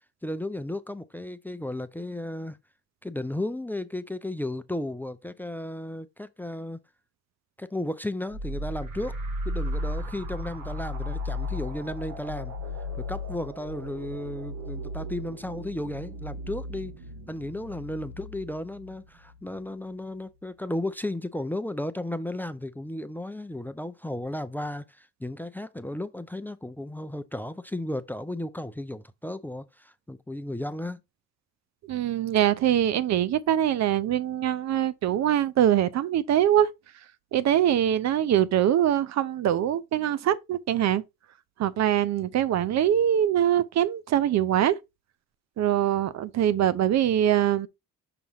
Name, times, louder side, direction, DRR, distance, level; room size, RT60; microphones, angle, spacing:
voice 1, 0.2-2.6 3.0-6.8 7.6-9.2 9.4-12.6 13.1-17.0 17.3-31.0, left 1 dB, 5° left, 0.5 m, -34 dB
sound 1, 8.3-19.7, left 1 dB, 80° right, 1.5 m, -35 dB
voice 2, 31.9-36.7 37.3-41.0 41.6-44.8 45.6-47.7, right 11 dB, 60° right, 0.6 m, -23 dB
5.9 x 3.0 x 5.5 m
cardioid pair, 90°, 30 cm